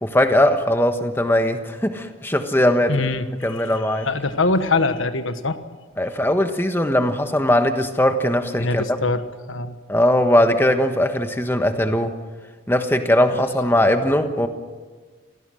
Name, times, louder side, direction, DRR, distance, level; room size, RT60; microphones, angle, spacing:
voice 1, 0.0-3.0 3.4-4.1 6.0-8.8 9.9-12.1 12.7-14.5, left 1 dB, 10° left, 7 dB, 1.3 m, -19 dB
voice 2, 2.9-3.3 3.5-3.6 4.0-5.6 8.6-9.2 9.5-9.8, left 3 dB, 80° left, 10 dB, 1.3 m, -22 dB
28.5 x 17.0 x 6.5 m, 1.4 s
head